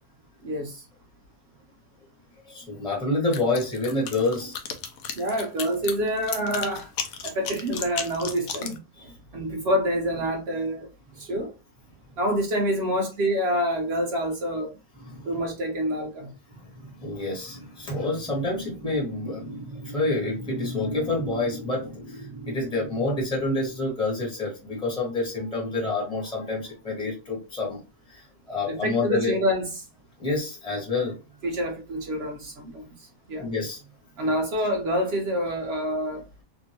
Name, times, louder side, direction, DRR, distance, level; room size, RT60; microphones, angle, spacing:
voice 1, 0.4-0.9 5.2-6.9 7.2-10.9 11.2-11.5 12.2-14.8 15.2-16.3 28.7-29.9 31.4-33.5 34.2-36.3, equal, 70° right, 0.6 m, -27 dB
voice 2, 2.4-4.5 9.0-9.1 15.0-15.3 16.5-27.8 28.1-29.3 30.2-31.1 33.4-33.8 34.2-34.3, left 2 dB, 5° left, 1.1 m, -28 dB
sound 1, 3.3-8.8, left 7 dB, 70° left, 1.0 m, -34 dB
2.8 x 2.6 x 2.8 m
omnidirectional pair, 1.7 m